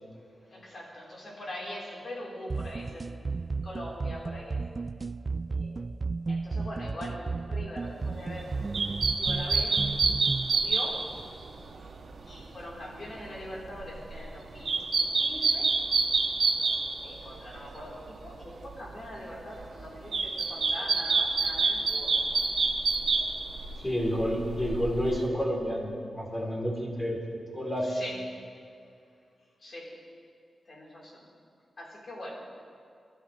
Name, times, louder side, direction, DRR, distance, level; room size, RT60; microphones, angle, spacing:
voice 1, 0.5-3.3 3.6-4.6 5.5-5.9 6.3-8.6 9.1-9.7 10.5-11.0 12.3-14.8 15.2-15.7 17.0-22.1 27.9-28.1 29.6-29.9 30.7-31.2 31.8-32.3, left 1 dB, 50° left, -5 dB, 4.5 m, -42 dB
sound 1, 2.5-10.5, right 4 dB, 35° right, 0.4 m, -33 dB
sound 2, 8.2-17.8 18.1-19.0 19.4-25.3, right 4 dB, 65° right, 1.3 m, -28 dB
voice 2, 23.8-27.2 27.5-27.9, equal, 15° left, -3 dB, 3.9 m, -29 dB
23.0 x 13.5 x 3.5 m, 2.4 s
wide cardioid pair, 105°, 0 cm